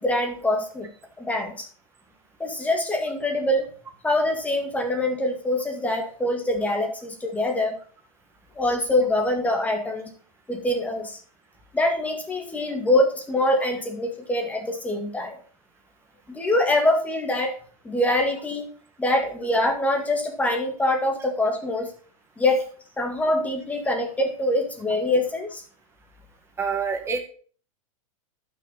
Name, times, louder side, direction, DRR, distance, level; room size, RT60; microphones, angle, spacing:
voice 1, 0.0-0.9 1.2-1.7 2.4-3.7 4.0-7.8 8.6-10.1 10.5-11.2 11.7-15.4 16.3-17.5 17.8-18.7 19.0-21.9 22.4-22.6 23.0-25.6, left 1 dB, 10° left, 4 dB, 2.0 m, -24 dB
voice 2, 26.6-27.2, right 5 dB, 15° right, 3 dB, 2.0 m, -26 dB
12.0 x 6.3 x 4.2 m, 0.43 s
hypercardioid pair, 135°, 18 cm